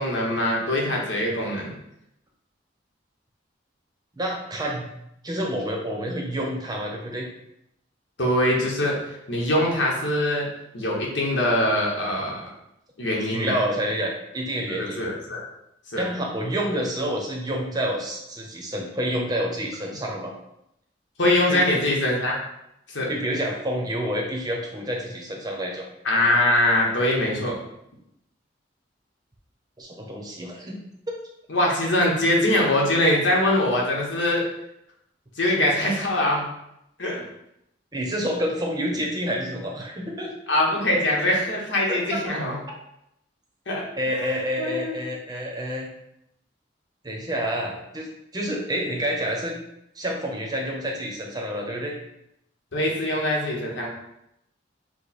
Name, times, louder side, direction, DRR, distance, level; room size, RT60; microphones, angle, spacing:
voice 1, 0.0-1.7 8.2-9.0 9.3-10.5 10.7-12.5 13.0-13.5 14.7-15.4 15.9-16.0 21.2-22.4 22.9-23.1 26.0-27.6 31.5-34.4 35.4-36.5 37.0-37.2 40.5-42.6 43.7-45.0 52.7-53.9, left 1 dB, 75° left, -2 dB, 1.1 m, -23 dB
voice 2, 4.1-4.9 5.2-7.2 13.2-15.0 16.0-20.3 21.5-21.6 23.1-25.8 29.8-30.8 37.9-40.3 41.9-42.0 44.0-45.9 47.0-48.1 48.3-49.5 50.0-51.9, equal, 20° right, 0 dB, 0.8 m, -28 dB
4.9 x 2.2 x 4.2 m, 0.81 s
head